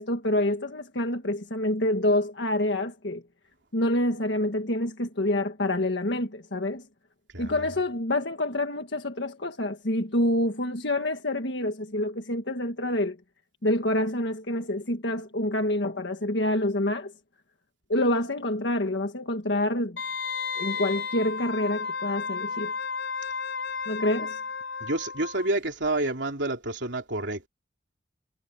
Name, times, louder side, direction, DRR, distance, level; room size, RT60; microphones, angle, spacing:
voice 1, 0.0-3.2 3.7-6.8 7.4-13.2 13.6-17.1 17.9-20.0 20.6-22.7 23.9-24.4, left 1 dB, 65° left, 1.7 m, -27 dB
voice 2, 7.3-7.7 24.8-27.5, right 2 dB, 70° right, 3.2 m, -29 dB
Wind instrument woodwind instrument, 20.0-25.5 25.8-25.9, left 5 dB, 85° left, 4.8 m, -33 dB
head